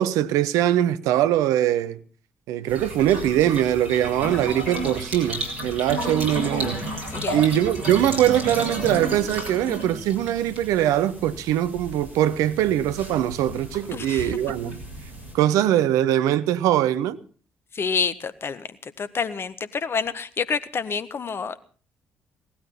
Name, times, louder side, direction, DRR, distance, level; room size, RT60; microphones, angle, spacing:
voice 1, 0.0-2.0 2.5-6.8 7.3-14.8 15.3-17.2, right 12 dB, 65° right, 0.8 m, -22 dB
sound 1, 2.7-15.3, right 1 dB, 85° right, 4.6 m, -33 dB
voice 2, 7.1-7.4 13.9-14.4 14.6-14.7 17.7-21.6, left 6 dB, 40° left, 1.5 m, -28 dB
18.5 x 13.0 x 5.7 m
figure-of-eight pair, 45°, 6 cm